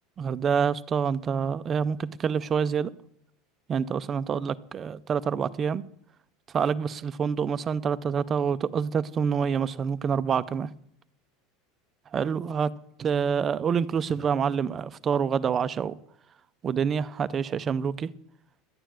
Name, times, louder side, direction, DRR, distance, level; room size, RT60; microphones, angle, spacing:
voice 1, 0.2-2.9 3.7-5.8 6.5-10.7 12.1-12.7 13.0-16.0 16.6-18.1, right 7 dB, 20° right, 0.4 m, -27 dB
11.5 x 9.2 x 7.4 m
supercardioid pair, 165°, 0 cm